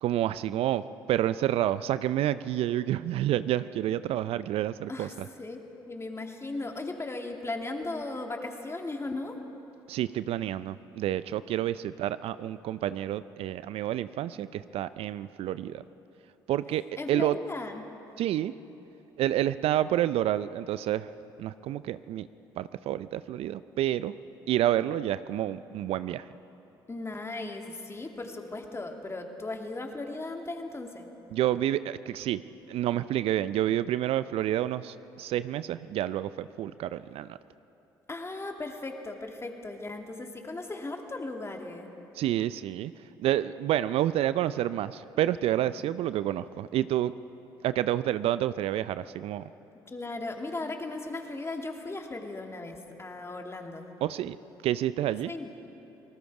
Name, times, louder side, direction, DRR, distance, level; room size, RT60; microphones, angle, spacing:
voice 1, 0.0-5.1 9.9-15.8 16.5-16.8 17.1-17.4 18.2-18.5 19.2-21.1 21.4-22.3 22.6-24.1 24.5-26.2 31.3-32.4 32.7-37.4 42.2-42.9 43.2-47.1 47.6-49.4 54.0-54.4 54.6-55.3, right 12 dB, 60° right, 15 dB, 0.5 m, -29 dB
voice 2, 5.9-9.4 17.0-17.8 26.9-31.1 38.1-41.9 49.9-53.9 55.3-55.5, left 2 dB, 25° left, 3 dB, 2.6 m, -37 dB
28.5 x 19.0 x 4.9 m, 3.0 s
hypercardioid pair, 50°, 11 cm